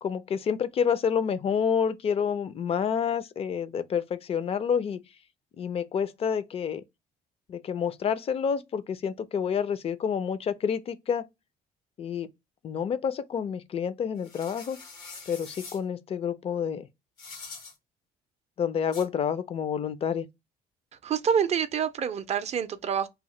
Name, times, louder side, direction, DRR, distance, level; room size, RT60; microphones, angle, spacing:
voice 1, 0.0-5.0 5.6-6.8 7.5-11.3 12.0-12.3 12.6-14.8 15.3-16.9 18.6-20.3, left 7 dB, 35° left, 0.4 m, -28 dB
sound 1, 14.2-15.8 17.2-17.7 18.9-19.1, left 4 dB, 85° left, 1.6 m, -44 dB
voice 2, 20.9-23.1, right 7 dB, 40° right, 0.4 m, -27 dB
2.8 x 2.1 x 3.1 m
cardioid pair, 110°, 17 cm